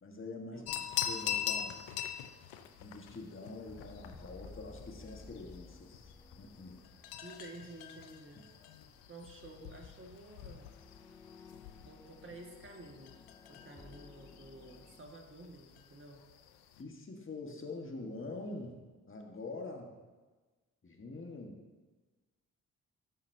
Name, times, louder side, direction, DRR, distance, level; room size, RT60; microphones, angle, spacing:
voice 1, 0.0-0.7 1.1-1.8 2.8-6.1 6.4-6.8 16.8-18.8 19.1-19.9 20.8-21.6, left 3 dB, 35° left, 2 dB, 1.5 m, -45 dB
voice 2, 0.5-0.9 7.2-8.4 9.1-10.7 11.8-13.2 13.5-16.2, right 2 dB, 35° right, 0 dB, 1.9 m, -51 dB
sound 1, 0.7-16.8, left 10 dB, 85° left, 0.6 m, -44 dB
sound 2, 3.6-8.5 8.8-9.0 10.4-15.0, left 3 dB, 10° left, 0.5 m, -56 dB
12.5 x 5.5 x 2.7 m, 1.3 s
supercardioid pair, 45°, 37 cm